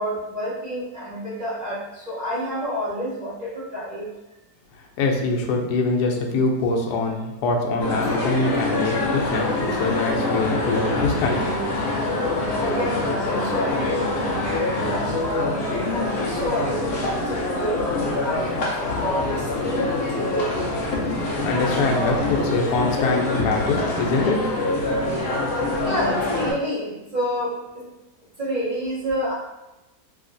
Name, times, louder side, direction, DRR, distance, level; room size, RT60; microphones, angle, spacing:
voice 1, 0.0-4.1 12.6-20.7 25.8-27.9 28.4-29.3, equal, 40° right, -8 dB, 0.7 m, -29 dB
voice 2, 5.0-11.4 21.4-24.4, left 3 dB, 80° left, 1 dB, 1.1 m, -24 dB
sound 1, 7.8-26.5, left 2 dB, 65° left, 0.6 m, -25 dB
3.2 x 2.8 x 2.6 m, 1.0 s
omnidirectional pair, 1.7 m